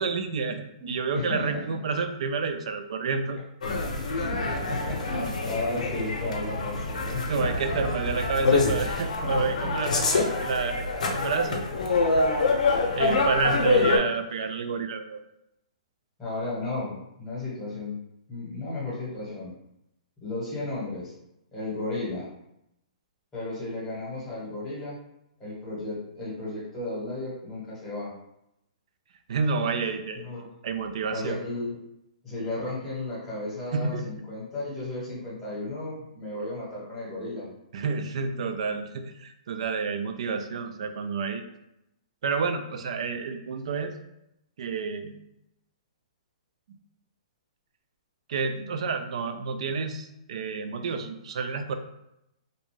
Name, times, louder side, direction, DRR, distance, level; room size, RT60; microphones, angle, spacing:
voice 1, 0.0-3.4 7.3-11.6 12.1-12.2 12.9-15.2 29.3-30.2 30.6-31.4 33.7-34.1 37.7-41.4 42.2-43.9 44.6-45.1 48.3-51.7, right 4 dB, 60° right, 7 dB, 0.4 m, -29 dB
voice 2, 0.8-1.8 4.1-7.5 9.2-9.5 13.5-14.1 16.2-18.0 18.3-19.5 20.2-21.1 21.5-22.3 23.3-25.0 25.4-28.1 30.2-30.5 31.1-31.8 32.2-37.5, left 2 dB, 10° left, -7 dB, 1.2 m, -34 dB
sound 1, 3.6-14.0, left 3 dB, 85° left, 0.6 m, -26 dB
2.6 x 2.2 x 3.1 m, 0.83 s
hypercardioid pair, 160°, 4 cm